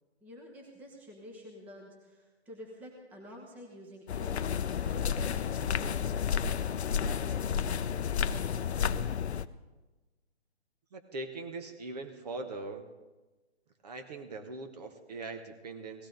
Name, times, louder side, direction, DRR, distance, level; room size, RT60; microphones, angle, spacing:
voice 1, 0.2-6.7 7.0-9.1, equal, 5° right, 0 dB, 1.0 m, -49 dB
sound 1, 4.1-9.5, left 7 dB, 70° left, 0.6 m, -31 dB
voice 2, 10.9-12.9 13.8-16.1, right 3 dB, 35° right, 6 dB, 1.1 m, -41 dB
17.0 x 14.5 x 3.9 m, 1.2 s
hypercardioid pair, 155°, 34 cm